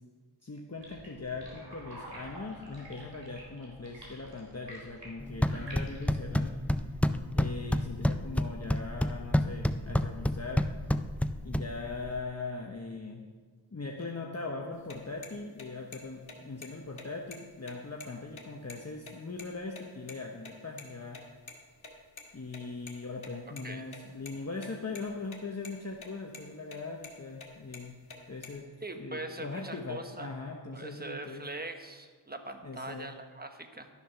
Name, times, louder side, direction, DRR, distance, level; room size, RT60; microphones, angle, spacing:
voice 1, 0.4-7.0 7.3-10.7 11.4-13.2 13.7-21.2 22.3-28.0 28.3-28.7 28.9-31.5 32.6-33.1, left 3 dB, 35° left, 0 dB, 1.0 m, -40 dB
sound 1, 0.8-6.2, equal, 65° right, 3.8 m, -48 dB
sound 2, 5.2-12.2, left 1 dB, 5° left, 0.4 m, -30 dB
sound 3, 14.8-19.8 20.1-20.2 20.5-20.6 20.8-20.9 21.1-21.2 21.5-21.6 21.8-22.9 23.2-23.7 23.9-24.7 25.0-25.4 25.6-26.1 26.3-26.4 26.7-27.1 27.4-28.6, left 4 dB, 85° left, 1.8 m, -47 dB
voice 2, 28.8-30.3 30.7-33.9, right 2 dB, 20° right, 6 dB, 1.1 m, -42 dB
12.5 x 7.1 x 5.8 m, 1.5 s
wide cardioid pair, 55°, 46 cm